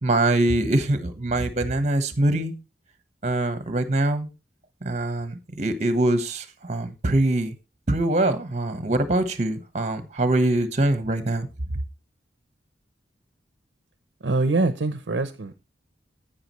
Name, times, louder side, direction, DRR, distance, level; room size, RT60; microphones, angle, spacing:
voice 1, 0.0-2.6 3.2-4.3 4.8-7.5 7.9-11.5, right 2 dB, 40° right, 1.1 m, -23 dB
voice 2, 14.2-15.5, right 3 dB, 70° right, 0.7 m, -24 dB
9.7 x 8.9 x 3.1 m
head